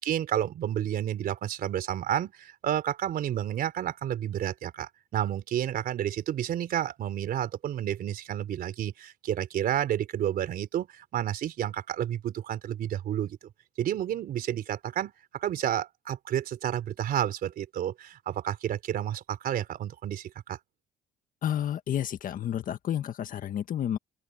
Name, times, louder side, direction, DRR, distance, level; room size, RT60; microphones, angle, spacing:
voice 1, 0.0-13.4 13.8-20.6, right 11 dB, 60° right, 3.9 m, -30 dB
voice 2, 21.4-24.0, left 10 dB, 55° left, 1.7 m, -30 dB
open air
cardioid pair, 110°, 17 cm